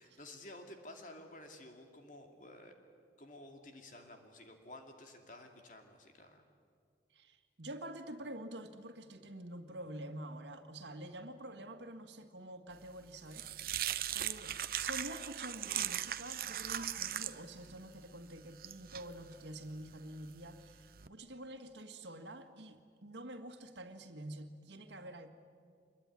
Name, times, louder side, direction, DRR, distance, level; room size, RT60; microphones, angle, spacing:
voice 1, 0.0-2.7 3.2-6.5, left 1 dB, 45° left, 4 dB, 2.5 m, -52 dB
voice 2, 7.1-13.5 14.1-25.3, right 1 dB, 80° right, 6 dB, 1.9 m, -47 dB
sound 1, 12.8-21.1, right 10 dB, 55° right, 0.8 m, -40 dB
25.0 x 22.0 x 9.8 m, 2.2 s
head